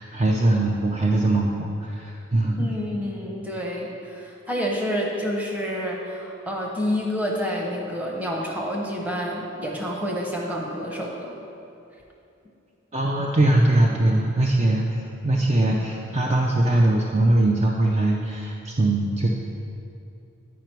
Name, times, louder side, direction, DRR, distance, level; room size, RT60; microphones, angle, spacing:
voice 1, 0.0-2.7 12.9-19.3, right 1 dB, 30° right, -1 dB, 0.4 m, -21 dB
voice 2, 2.6-11.4, equal, 10° right, -2 dB, 0.9 m, -28 dB
9.3 x 4.9 x 4.6 m, 2.7 s
head